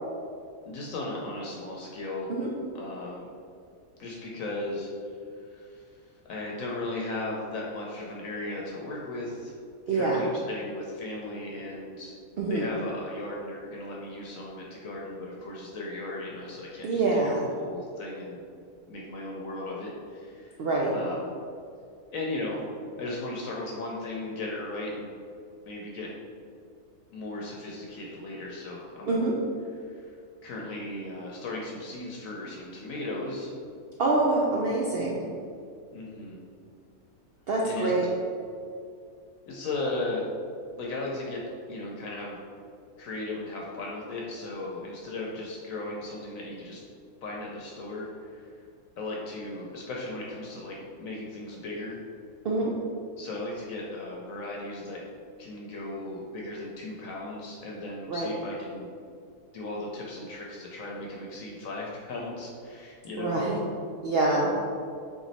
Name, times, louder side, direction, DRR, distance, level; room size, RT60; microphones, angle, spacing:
voice 1, 0.7-2.3 2.7-3.3 4.0-6.0 6.2-9.5 9.9-12.1 12.5-18.4 18.9-20.6 20.9-21.3 22.1-22.6 23.0-25.1 25.7-26.1 27.1-29.2 29.8-30.1 30.4-33.5 35.9-36.4 37.6-37.9 39.5-40.2 40.8-41.4 41.7-42.4 43.0-46.8 47.2-48.7 49.0-52.0 53.2-55.0 55.4-58.9 59.5-63.4, left 2 dB, 70° left, -3 dB, 1.0 m, -36 dB
voice 2, 9.9-10.3 12.4-12.7 16.8-17.4 20.6-20.9 29.1-29.3 34.0-35.2 37.5-38.1 52.4-52.7 58.1-58.3 63.2-63.6 64.0-64.5, right 2 dB, 70° right, -4 dB, 0.5 m, -25 dB
4.0 x 3.0 x 4.0 m, 2.3 s
omnidirectional pair, 1.6 m